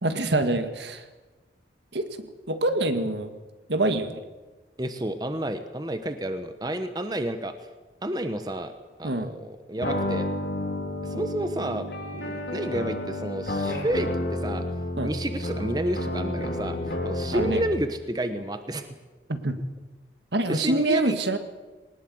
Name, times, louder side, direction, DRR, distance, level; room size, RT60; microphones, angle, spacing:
voice 1, 0.0-1.0 1.9-3.3 3.7-4.2 9.0-9.3 15.0-15.1 17.3-17.6 19.3-19.6 20.3-21.4, right 2 dB, 70° right, 8 dB, 1.9 m, -26 dB
voice 2, 4.8-7.6 8.0-8.7 9.0-10.3 11.0-11.9 12.1-14.6 15.0-18.9 20.5-21.2, right 1 dB, 20° right, 9 dB, 1.1 m, -30 dB
sound 1, 9.8-17.8, left 1 dB, 65° left, 3.9 m, -31 dB
21.5 x 19.5 x 7.9 m, 1.2 s
head